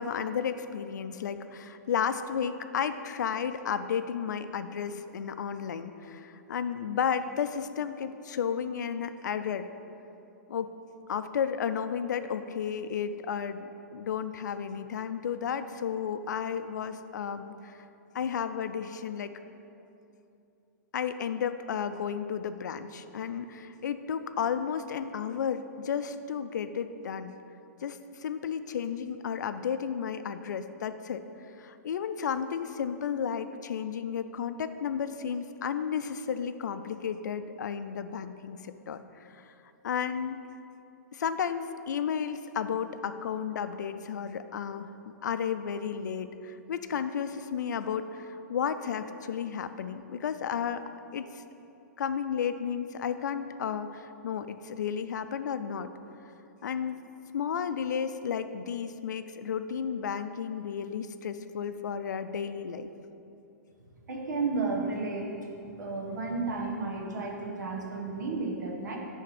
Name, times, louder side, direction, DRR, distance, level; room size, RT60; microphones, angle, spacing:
voice 1, 0.0-9.7 10.5-10.7 11.1-17.8 18.1-19.3 20.9-27.3 27.8-31.2 31.6-39.5 39.8-40.4 41.1-44.9 45.2-50.8 51.1-51.4 52.0-55.9 56.6-57.0 57.3-62.9, left 7 dB, 80° left, 11 dB, 0.4 m, -33 dB
voice 2, 64.1-65.3 65.8-69.0, right 3 dB, 80° right, 0 dB, 1.4 m, -32 dB
9.9 x 3.5 x 5.0 m, 2.8 s
hypercardioid pair, 140°, 10 cm